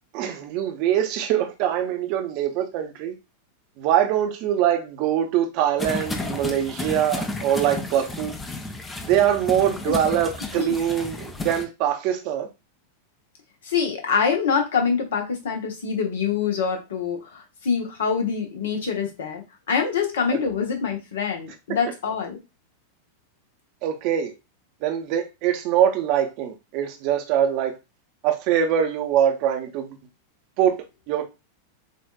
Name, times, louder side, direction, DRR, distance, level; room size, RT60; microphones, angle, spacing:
voice 1, 0.1-3.1 3.8-8.4 9.0-12.5 20.3-20.4 23.8-24.3 24.8-27.8 28.2-30.0 30.6-31.2, right 10 dB, 45° right, 0.8 m, -23 dB
sound 1, 5.8-11.7, left 2 dB, 15° left, 0.6 m, -32 dB
voice 2, 13.6-22.4, left 6 dB, 60° left, 1.0 m, -25 dB
6.6 x 2.5 x 2.3 m
figure-of-eight pair, 90°, 0 cm